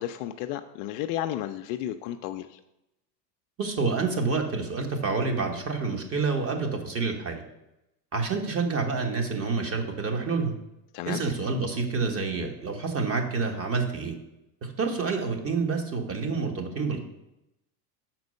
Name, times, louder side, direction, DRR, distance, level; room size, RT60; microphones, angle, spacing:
voice 1, 0.0-2.6 10.9-11.2, left 12 dB, 50° left, 8 dB, 0.5 m, -33 dB
voice 2, 3.6-7.4 8.1-10.5 11.0-14.1 14.6-17.1, right 4 dB, 30° right, 4 dB, 1.2 m, -28 dB
6.0 x 4.5 x 5.3 m, 0.88 s
supercardioid pair, 115°, 49 cm